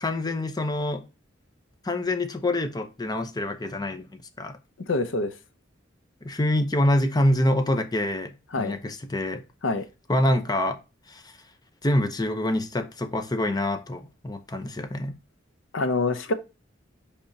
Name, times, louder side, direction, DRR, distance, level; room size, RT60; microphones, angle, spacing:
voice 1, 0.0-1.0 1.8-4.1 4.4-4.6 6.2-9.4 10.1-10.8 11.1-11.3 11.8-15.1, left 1 dB, 20° left, 0.7 m, -26 dB
voice 2, 4.9-5.3 8.5-8.8 9.6-9.8 15.7-16.3, left 3 dB, 90° left, 0.7 m, -25 dB
10.5 x 3.5 x 2.7 m
head